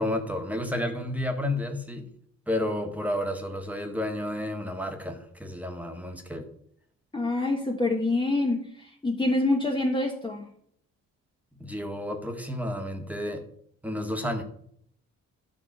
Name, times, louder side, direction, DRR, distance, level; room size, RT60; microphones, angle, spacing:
voice 1, 0.0-2.1 2.5-6.5 11.6-13.4 13.8-14.4, left 1 dB, 5° right, 3 dB, 1.7 m, -31 dB
voice 2, 7.1-10.5, left 2 dB, 15° left, 0 dB, 1.3 m, -26 dB
11.0 x 3.8 x 7.4 m, 0.66 s
cardioid pair, 90°, 30 cm